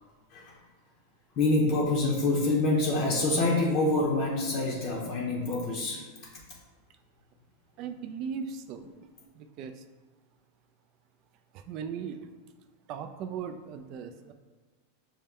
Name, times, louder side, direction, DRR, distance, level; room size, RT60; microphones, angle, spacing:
voice 1, 1.4-6.0, left 2 dB, 40° left, -2 dB, 0.6 m, -26 dB
voice 2, 7.8-8.9 9.3-9.8 11.5-12.3 12.9-14.3, right 7 dB, 45° right, 8 dB, 0.3 m, -38 dB
5.4 x 2.1 x 3.5 m, 1.4 s
supercardioid pair, 145°, 0 cm